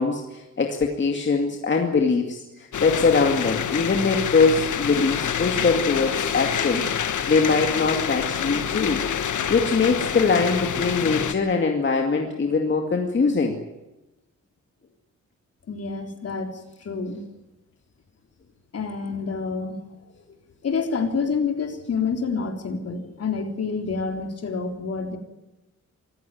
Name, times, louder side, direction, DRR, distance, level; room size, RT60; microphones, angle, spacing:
voice 1, 0.0-9.0 9.5-13.6, left 4 dB, 40° left, 3 dB, 2.4 m, -22 dB
sound 1, 2.7-11.3, left 8 dB, 80° left, 1.5 m, -27 dB
voice 2, 15.7-16.5 16.8-17.2 18.7-19.8 20.6-25.2, left 5 dB, 55° left, 5 dB, 3.8 m, -28 dB
25.5 x 15.0 x 9.3 m, 0.99 s
wide cardioid pair, 160°, 30 cm